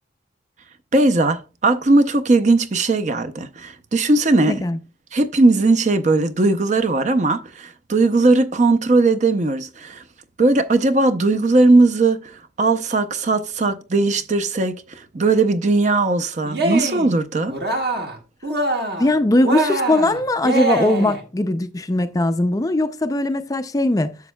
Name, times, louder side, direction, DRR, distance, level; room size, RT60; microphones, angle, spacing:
voice 1, 0.9-4.6 5.1-10.0 10.4-12.2 12.6-17.5, right 2 dB, 40° right, 0.5 m, -18 dB
voice 2, 4.5-4.8 19.0-24.2, left 1 dB, 20° left, 0.4 m, -20 dB
Cheering, 16.4-17.1 17.5-18.2 18.4-19.1 19.4-21.2, right 2 dB, 55° right, 1.6 m, -23 dB
10.5 x 7.1 x 2.2 m
head